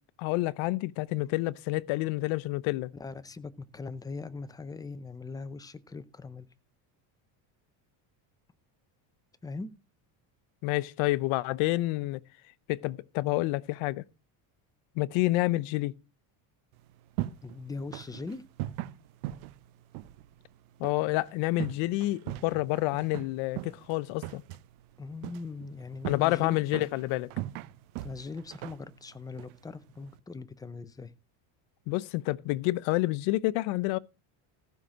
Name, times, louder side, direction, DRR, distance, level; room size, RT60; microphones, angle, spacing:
voice 1, 0.2-2.9 10.6-12.2 12.7-14.0 15.0-15.9 20.8-24.4 26.1-27.3 31.9-34.0, left 19 dB, 75° left, 0.8 m, -28 dB
voice 2, 2.9-6.5 9.4-9.7 17.4-18.4 25.0-26.6 28.0-31.1, left 4 dB, 10° left, 0.5 m, -40 dB
sound 1, 16.7-30.2, right 15 dB, 90° right, 0.9 m, -41 dB
15.0 x 5.8 x 6.2 m
cardioid pair, 165°, 48 cm